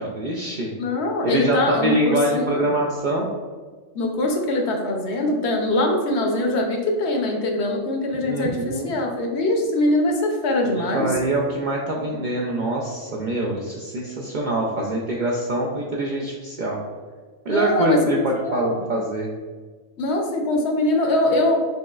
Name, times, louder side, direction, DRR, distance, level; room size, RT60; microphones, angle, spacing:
voice 1, 0.0-0.7 1.2-3.3 8.2-9.0 10.7-16.8 17.5-19.3, right 1 dB, 60° right, -2 dB, 0.5 m, -24 dB
voice 2, 0.8-2.7 3.9-11.1 17.5-18.9 20.0-21.6, left 1 dB, 70° left, 2 dB, 0.9 m, -23 dB
5.4 x 3.0 x 2.3 m, 1.4 s
omnidirectional pair, 1.2 m